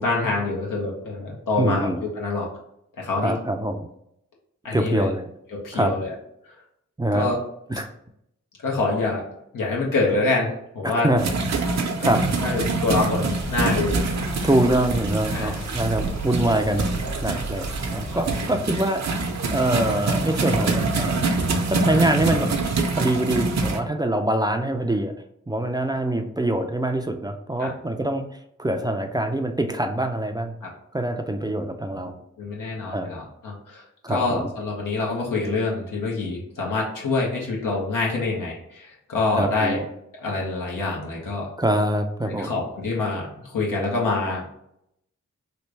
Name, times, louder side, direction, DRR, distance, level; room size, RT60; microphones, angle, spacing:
voice 1, 0.0-1.9 2.1-2.5 3.0-3.3 4.6-5.1 5.5-6.1 7.1-7.4 8.6-9.3 9.5-10.5 10.7-11.1 12.0-12.1 12.4-14.0 15.3-15.5 17.2-17.3 27.6-27.7 30.6-30.7 31.9-32.1 32.4-33.8 34.1-39.8 40.1-41.5 42.2-43.3 43.5-44.4, left 3 dB, 85° left, -2 dB, 1.0 m, -26 dB
voice 2, 1.6-2.0 3.2-3.9 4.7-5.3 5.7-5.9 7.0-7.3 7.7-7.9 10.8-11.2 11.7-12.2 14.4-16.9 17.2-21.2 21.7-22.5 23.0-25.1 25.5-30.5 30.9-32.1 32.9-33.1 34.0-34.5 39.3-39.9 41.6-42.6, right 1 dB, 15° right, 5 dB, 0.4 m, -24 dB
sound 1, 11.2-23.8, right 3 dB, 60° right, 0.7 m, -25 dB
sound 2, 13.4-18.4, right 1 dB, 55° left, 1.3 m, -34 dB
3.2 x 2.5 x 3.2 m, 0.77 s
cardioid pair, 40°, 32 cm